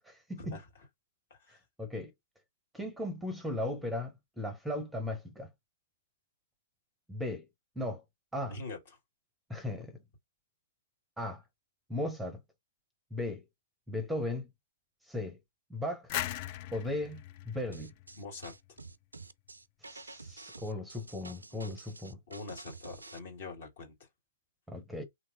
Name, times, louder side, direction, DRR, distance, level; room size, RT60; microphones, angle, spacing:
voice 1, 0.0-0.6 1.5-2.1 2.7-5.5 7.1-7.5 7.8-8.0 8.3-8.6 9.5-10.0 11.2-11.4 11.9-12.4 13.1-13.4 13.9-14.5 15.1-15.4 15.7-16.1 16.7-17.9 19.8-22.2 24.7-25.0, left 1 dB, ahead, 0.6 m, -37 dB
sound 1, 16.1-18.8, left 13 dB, 40° left, 0.3 m, -39 dB
sound 2, 17.7-23.2, right 3 dB, 80° right, 0.3 m, -49 dB
voice 2, 18.2-18.6 22.3-24.1, left 3 dB, 55° left, 1.7 m, -44 dB
3.1 x 2.9 x 2.5 m
figure-of-eight pair, 115°, 0 cm